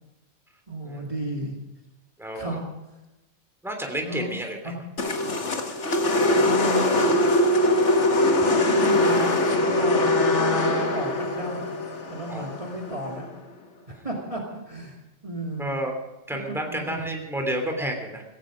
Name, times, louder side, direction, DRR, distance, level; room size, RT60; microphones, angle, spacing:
voice 1, 0.7-1.6 2.3-2.6 4.0-4.8 6.4-7.2 8.4-9.4 9.7-11.7 12.1-13.3 13.9-15.0 15.2-15.7 16.3-17.1, right 1 dB, 25° right, 0 dB, 2.4 m, -33 dB
voice 2, 3.6-4.6 12.3-12.6 15.6-15.9 16.3-18.2, right 1 dB, ahead, 3 dB, 3.1 m, -30 dB
sound 1, 5.0-13.2, left 1 dB, 65° left, 2.0 m, -22 dB
16.5 x 16.5 x 5.1 m, 1.0 s
omnidirectional pair, 1.3 m